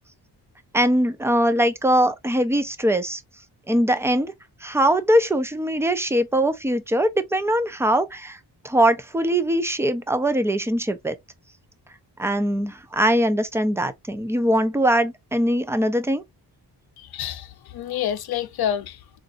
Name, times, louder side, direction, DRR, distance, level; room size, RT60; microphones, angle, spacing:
voice 1, 0.7-3.2 3.7-4.3 4.6-8.4 8.6-11.2 12.2-16.2, right 1 dB, 5° right, 0.4 m, -21 dB
voice 2, 17.0-19.2, left 10 dB, 60° left, 0.6 m, -28 dB
3.8 x 2.5 x 2.5 m
cardioid pair, 115°, 43 cm